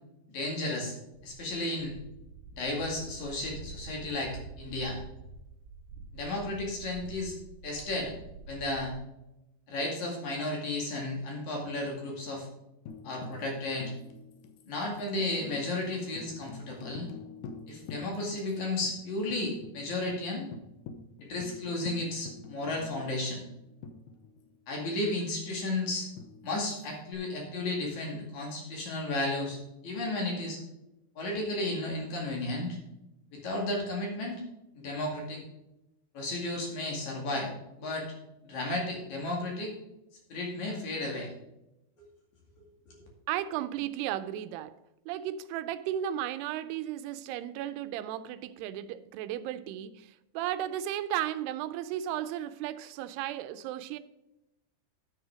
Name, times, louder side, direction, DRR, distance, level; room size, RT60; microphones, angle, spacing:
voice 1, 0.3-0.9 1.2-1.9 2.6-5.0 6.1-7.3 7.6-8.1 8.5-8.9 9.7-12.5 13.0-13.9 14.7-17.1 17.7-20.5 21.2-23.4 24.7-26.1 26.4-30.6 31.2-32.8 33.3-34.4 34.7-35.4 36.1-37.5 37.8-38.1 38.4-39.7 40.3-41.3, left 2 dB, 50° left, 3.2 m, -33 dB
sound 1, 1.1-8.9, right 4 dB, 65° right, 2.5 m, -47 dB
Tambourine, 12.9-18.5 18.8-18.9 19.3-19.8 20.1-20.2 20.5-24.6 26.2-27.1, left 5 dB, 75° left, 1.8 m, -47 dB
voice 2, 43.3-44.7 45.1-54.0, right 11 dB, 90° right, 2.6 m, -34 dB
10.0 x 6.3 x 5.0 m
omnidirectional pair, 4.6 m